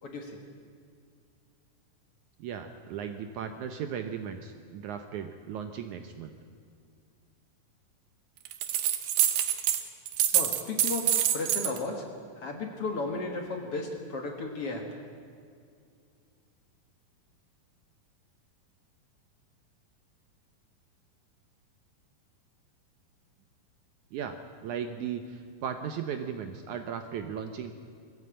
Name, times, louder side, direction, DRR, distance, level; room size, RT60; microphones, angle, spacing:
voice 1, 0.0-0.4 10.3-12.0 12.4-14.9, left 3 dB, 50° left, 3 dB, 2.0 m, -34 dB
voice 2, 2.4-6.4 24.1-27.7, right 7 dB, 70° right, 7 dB, 1.9 m, -37 dB
sound 1, 8.5-9.8 10.1-11.8, right 11 dB, 85° right, 3.1 m, -26 dB
21.5 x 15.0 x 8.7 m, 2.3 s
omnidirectional pair, 4.2 m